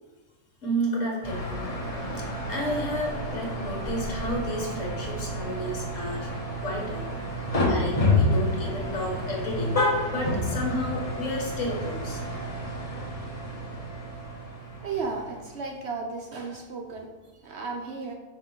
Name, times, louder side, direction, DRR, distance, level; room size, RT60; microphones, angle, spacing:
voice 1, 0.6-6.3 6.6-9.7 10.1-12.2, equal, 50° left, -1 dB, 1.7 m, -32 dB
sound 1, 1.2-15.6, left 1 dB, 25° left, 1.0 m, -29 dB
voice 2, 14.8-18.1, right 4 dB, 60° right, 2 dB, 0.7 m, -34 dB
5.8 x 4.4 x 3.8 m, 1.2 s
omnidirectional pair, 1.7 m